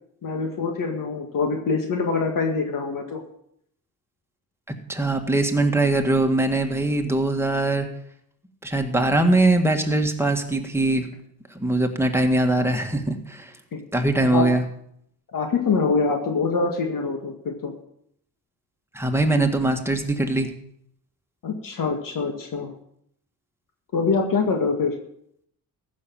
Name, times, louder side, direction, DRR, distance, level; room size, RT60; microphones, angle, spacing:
voice 1, 0.2-3.2 13.7-13.8 14.3-14.4 15.3-17.7 21.4-22.7 23.9-24.9, left 4 dB, 65° left, 3 dB, 1.9 m, -24 dB
voice 2, 4.9-7.9 8.6-11.1 11.5-13.5 13.9-14.6 18.9-20.5, right 2 dB, 5° right, 3 dB, 1.8 m, -21 dB
14.5 x 6.4 x 7.4 m, 0.71 s
cardioid pair, 90°, 35 cm